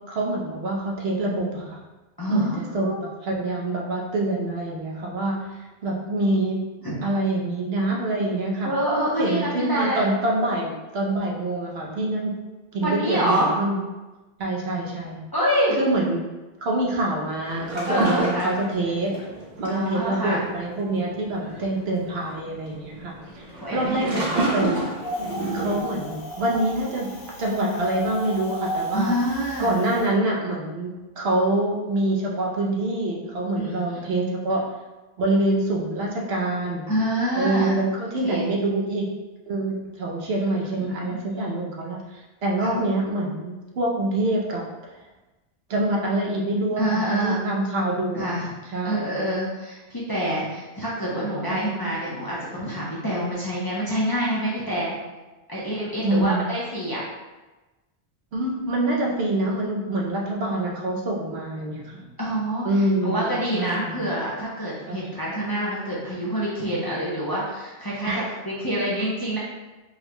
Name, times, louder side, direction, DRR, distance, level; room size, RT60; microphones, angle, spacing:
voice 1, 0.1-1.8 2.3-6.6 7.0-8.7 9.2-12.3 12.7-13.8 14.4-15.2 15.8-16.3 16.6-19.2 19.6-23.1 23.7-24.8 25.5-27.1 27.4-29.1 29.6-34.6 35.2-36.9 37.3-39.1 39.5-44.6 45.7-48.2 48.7-49.1 51.5-51.6 56.0-56.4 58.3-62.1 62.6-64.0 64.9-65.0 68.0-68.3, right 1 dB, 75° right, -1 dB, 0.9 m, -25 dB
voice 2, 2.2-3.0 6.8-7.0 8.6-10.1 12.8-13.5 15.3-15.8 17.9-18.5 19.7-20.4 21.4-21.7 23.5-24.2 28.9-29.7 33.6-34.3 36.9-37.8 38.2-38.5 40.3-40.5 40.8-40.9 41.3-41.5 42.6-42.7 46.8-47.4 48.1-48.5 48.8-55.0 55.5-57.0 62.2-69.4, equal, 30° left, -7 dB, 0.5 m, -27 dB
sound 1, 17.4-25.8, right 2 dB, 50° right, 0.8 m, -30 dB
Wind, 25.0-30.1, equal, 65° left, 0.9 m, -34 dB
3.8 x 2.1 x 2.9 m, 1.1 s
omnidirectional pair, 1.0 m